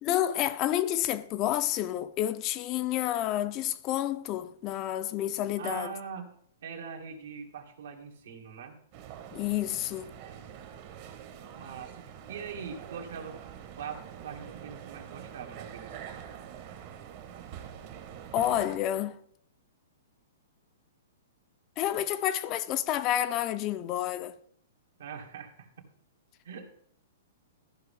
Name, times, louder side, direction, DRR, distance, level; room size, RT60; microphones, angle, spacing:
voice 1, 0.0-5.9 9.3-10.1 18.3-19.2 21.8-24.4, left 12 dB, 25° left, 0.5 m, -29 dB
voice 2, 5.6-6.4 6.6-8.8 11.5-13.4 13.8-16.2 25.0-25.7 26.4-26.7, right 6 dB, 75° right, 2.0 m, -42 dB
sound 1, 8.9-18.8, right 9 dB, 40° right, 1.1 m, -45 dB
14.0 x 5.6 x 3.4 m
hypercardioid pair, 160°, 0 cm